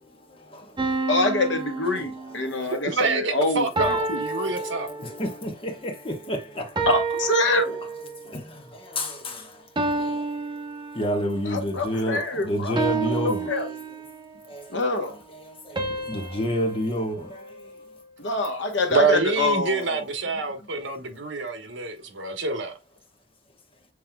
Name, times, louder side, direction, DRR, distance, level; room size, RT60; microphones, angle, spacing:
voice 1, 0.0-1.1 2.0-2.1 2.3-3.0 4.3-6.9 7.6-7.7 8.1-10.4 10.9-13.8 14.5-17.7, equal, 30° left, 1.2 m, -31 dB
sound 1, 0.8-2.7 3.8-5.4 6.8-8.3 9.8-11.4 12.8-14.4 15.8-18.1, right 3 dB, 25° right, 0.7 m, -30 dB
voice 2, 1.1-4.2 6.9-7.8 11.4-12.8 13.2-13.7 14.7-15.1 18.2-20.0, left 2 dB, 70° left, 1.1 m, -25 dB
voice 3, 2.7-4.9 18.9-22.8, right 4 dB, 75° right, 1.2 m, -26 dB
7.3 x 3.3 x 2.2 m
head